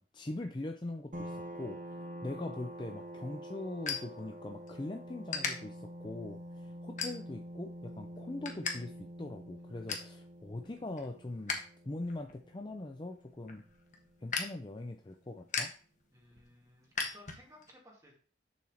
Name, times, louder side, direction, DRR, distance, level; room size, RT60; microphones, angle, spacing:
voice 1, 0.0-1.8 2.2-11.6 11.8-13.6 14.2-15.7, left 2 dB, 25° left, 4 dB, 0.5 m, -42 dB
sound 1, 1.1-14.4, equal, 45° right, 1.0 m, -47 dB
sound 2, 2.7-4.8 5.3-5.5 6.1-6.3 7.0-7.5 7.9-8.7 9.0-9.1 9.5-10.1 10.6-11.7 12.0-17.7, left 5 dB, 40° left, 1.4 m, -39 dB
voice 2, 16.1-18.3, left 1 dB, 20° right, -2 dB, 2.3 m, -58 dB
7.1 x 4.4 x 6.4 m, 0.40 s
head